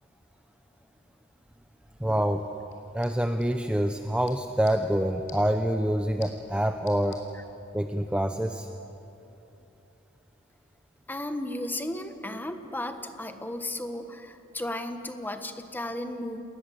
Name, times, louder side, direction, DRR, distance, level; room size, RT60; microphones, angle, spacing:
voice 1, 2.0-2.5 2.9-7.2 7.7-8.7, equal, 5° right, 6 dB, 0.7 m, -26 dB
sound 1, 2.6-7.6, left 4 dB, 85° left, 4.7 m, -53 dB
voice 2, 11.1-16.4, left 1 dB, 10° left, 7 dB, 1.4 m, -34 dB
28.5 x 20.0 x 7.9 m, 2.9 s
head